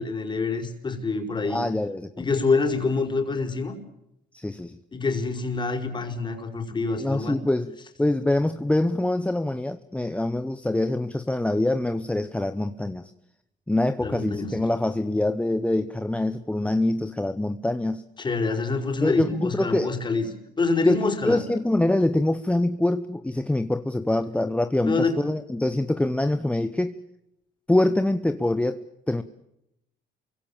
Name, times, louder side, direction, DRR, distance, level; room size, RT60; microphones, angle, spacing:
voice 1, 0.0-1.6 2.2-3.7 4.9-7.4 14.0-14.6 18.2-20.3 20.6-21.5 24.9-25.2, left 4 dB, 25° left, 5.2 m, -26 dB
voice 2, 1.5-2.3 4.3-4.8 7.0-13.1 13.7-18.0 19.0-19.9 20.8-27.0 27.7-29.2, left 1 dB, 5° left, 1.0 m, -25 dB
29.0 x 24.0 x 7.4 m
cardioid pair, 110°, 17 cm